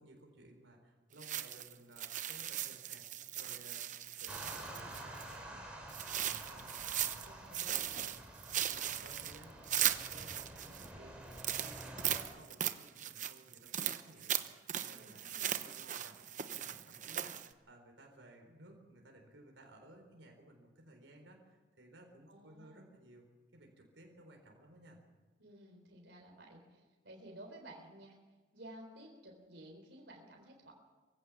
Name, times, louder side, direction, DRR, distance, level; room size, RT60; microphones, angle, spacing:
voice 1, 0.0-3.0 3.4-3.8 4.1-15.2 15.6-16.2 16.5-23.3 23.5-25.0, right 1 dB, 85° right, 2 dB, 3.9 m, -58 dB
sound 1, 1.2-5.3 5.9-7.3 7.5-10.9 11.3-17.5, right 10 dB, 40° right, 0.8 m, -38 dB
sound 2, 4.3-12.2, right 1 dB, 5° right, 3.9 m, -49 dB
voice 2, 14.9-15.7 22.3-22.9 25.4-28.2 28.5-30.7, right 1 dB, 70° right, 1 dB, 3.9 m, -54 dB
23.0 x 16.0 x 7.2 m, 1.3 s
head